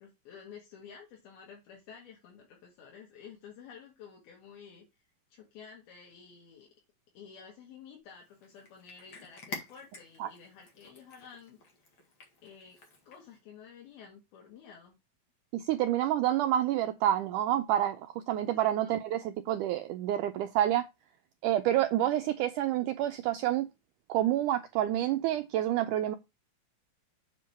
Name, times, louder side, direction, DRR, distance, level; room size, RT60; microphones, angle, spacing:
voice 1, 0.0-4.9 5.3-6.7 7.2-11.6 12.4-12.8 13.1-15.0 18.8-19.0, left 7 dB, 85° left, 3.8 m, -51 dB
Cat, 8.2-13.4, left 3 dB, 40° left, 2.2 m, -48 dB
voice 2, 15.5-20.9 21.4-23.7 24.1-26.2, right 12 dB, 85° right, 1.8 m, -28 dB
7.6 x 4.6 x 5.8 m
omnidirectional pair, 4.2 m